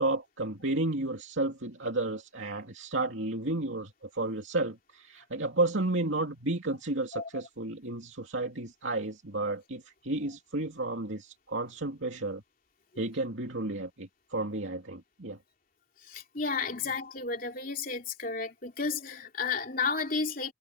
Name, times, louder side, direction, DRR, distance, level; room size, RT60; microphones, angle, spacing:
voice 1, 0.0-12.4 13.0-15.4, right 2 dB, 85° right, 2.6 m, -32 dB
voice 2, 16.0-20.5, left 4 dB, 45° left, 3.2 m, -32 dB
head